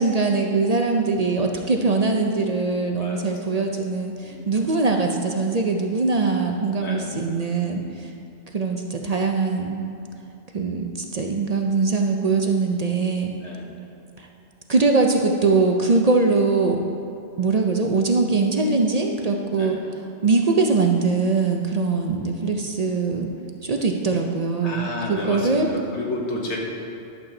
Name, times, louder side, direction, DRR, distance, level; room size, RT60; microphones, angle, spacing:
voice 1, 0.0-8.1 8.5-9.8 10.5-13.3 14.2-14.3 14.7-16.8 17.4-19.8 20.2-23.3 23.6-25.7, right 3 dB, 45° right, 2 dB, 0.6 m, -22 dB
voice 2, 1.6-2.1 3.0-3.2 3.6-3.7 4.2-4.6 6.8-7.1 7.7-8.0 13.4-13.7 19.6-19.8 24.6-26.6, left 2 dB, 75° left, -2 dB, 1.7 m, -32 dB
11.0 x 7.7 x 3.8 m, 2.7 s
omnidirectional pair, 1.2 m